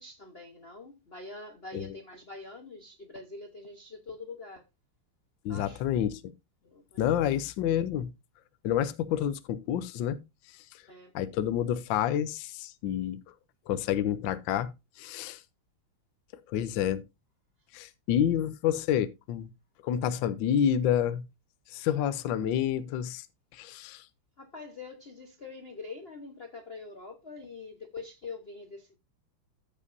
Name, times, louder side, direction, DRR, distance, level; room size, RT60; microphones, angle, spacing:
voice 1, 0.0-4.6 5.5-5.8 6.6-7.2 10.9-11.1 24.4-29.0, left 3 dB, 35° left, 1.0 m, -44 dB
voice 2, 5.4-6.2 7.0-8.1 8.6-10.2 10.7-10.8 11.1-13.2 13.7-14.7 15.0-15.4 16.5-17.0 17.7-19.5 19.8-21.2 21.7-23.3 23.5-24.0, left 10 dB, 70° left, 1.3 m, -28 dB
14.5 x 5.5 x 2.6 m
omnidirectional pair, 2.4 m